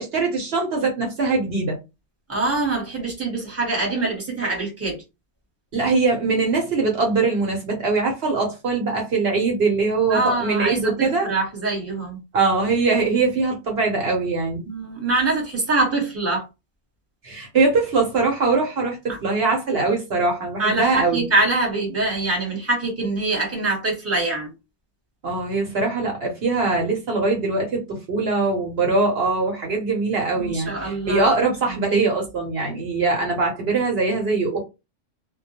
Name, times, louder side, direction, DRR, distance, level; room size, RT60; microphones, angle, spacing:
voice 1, 0.0-1.8 5.7-11.3 12.3-14.6 17.2-21.2 25.2-34.6, right 3 dB, 55° right, 0.9 m, -22 dB
voice 2, 2.3-5.0 10.1-12.2 14.7-16.5 20.6-24.5 30.4-31.3, right 2 dB, 15° right, 1.0 m, -24 dB
2.2 x 2.1 x 2.8 m
omnidirectional pair, 1.3 m